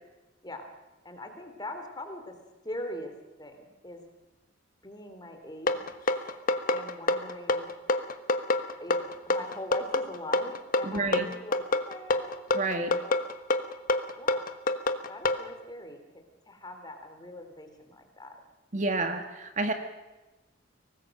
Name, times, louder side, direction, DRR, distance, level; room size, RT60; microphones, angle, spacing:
voice 1, 1.0-2.4 2.6-3.1 3.4-4.0 4.8-5.8 6.7-7.7 8.8-9.0 9.3-12.4 13.0-13.2 14.2-14.5 15.1-18.4, left 1 dB, 20° left, 5 dB, 3.4 m, -42 dB
sound 1, 5.7-15.4, left 2 dB, 45° left, 1.3 m, -26 dB
voice 2, 10.8-11.3 12.5-13.0 18.7-19.7, right 2 dB, 40° right, 7 dB, 1.7 m, -29 dB
24.0 x 19.0 x 6.6 m, 1.1 s
head